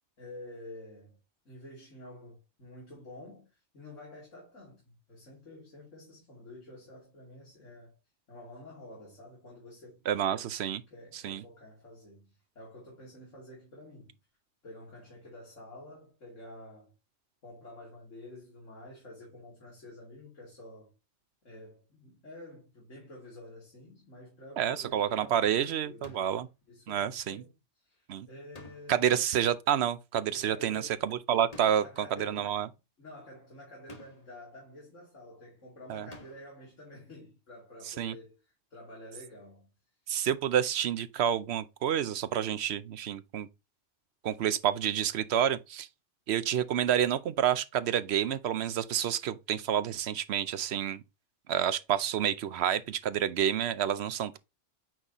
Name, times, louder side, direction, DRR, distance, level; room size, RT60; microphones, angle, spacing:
voice 1, 0.2-1.2 1.4-8.0 8.3-10.0 10.3-10.5 10.9-14.1 14.6-16.9 17.4-20.9 21.4-26.2 26.7-29.2 30.3-31.0 31.5-39.7, left 1 dB, 85° left, 3.0 m, -49 dB
voice 2, 10.1-10.8 11.2-11.4 24.6-26.5 26.9-27.4 28.1-28.3 28.9-31.8 32.2-32.7 35.9-36.1 38.0-38.1 40.1-43.5 44.2-45.9 46.3-51.0 51.5-54.4, right 10 dB, 65° right, 0.9 m, -29 dB
sound 1, 26.0-26.5 28.5-29.2 31.5-32.1 33.9-34.4 36.1-36.6, left 2 dB, 35° left, 1.1 m, -51 dB
9.0 x 4.0 x 2.9 m
omnidirectional pair, 1.2 m